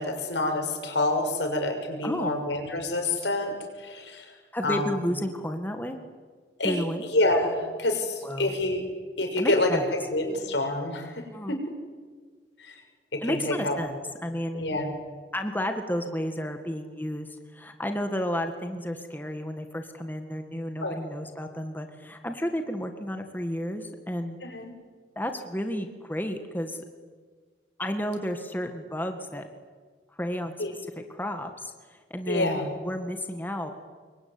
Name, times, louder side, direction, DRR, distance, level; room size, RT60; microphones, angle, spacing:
voice 1, 0.0-4.3 4.6-4.8 6.6-6.8 7.1-8.8 9.2-9.8 10.1-11.6 12.6-12.8 13.1-13.8 14.5-14.9 20.8-20.9 24.4-24.7 30.6-30.7 32.3-32.7, left 2 dB, 80° left, 4 dB, 6.1 m, -27 dB
voice 2, 2.0-2.4 4.5-6.0 6.6-7.1 8.2-8.5 9.4-9.9 11.3-11.6 13.2-14.8 15.3-24.4 25.2-26.8 27.8-29.5 30.2-30.5 31.1-32.6 32.8-33.7, equal, 10° left, 6 dB, 1.8 m, -32 dB
27.0 x 23.0 x 9.6 m, 1.5 s
head